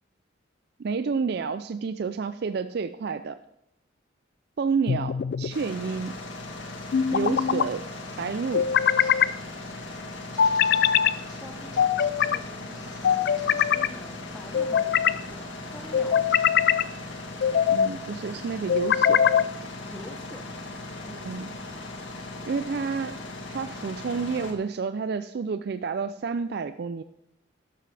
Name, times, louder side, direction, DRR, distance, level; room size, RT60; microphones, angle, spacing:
voice 1, 0.8-3.4 4.6-6.2 7.1-7.9 8.2-8.7 17.7-19.3 21.3-21.5 22.5-23.2 23.5-27.0, right 5 dB, 55° right, 11 dB, 0.4 m, -30 dB
sound 1, 4.9-5.5 6.9-7.7 8.5-9.3 10.4-11.1 11.8-12.4 13.0-13.9 14.5-15.2 15.9-16.8 17.4-17.9 18.7-19.5, left 8 dB, 55° left, 0.3 m, -22 dB
sound 2, 5.5-24.5, left 2 dB, 75° left, 1.9 m, -39 dB
sound 3, 8.5-9.3 9.6-10.9 11.3-11.4 11.7-13.9 14.2-14.3 14.4-16.3, left 1 dB, 20° left, 5.2 m, -51 dB
voice 2, 11.2-16.5 19.8-20.7 21.0-21.5, equal, 5° left, 5 dB, 1.0 m, -46 dB
12.5 x 11.5 x 3.3 m, 0.82 s
head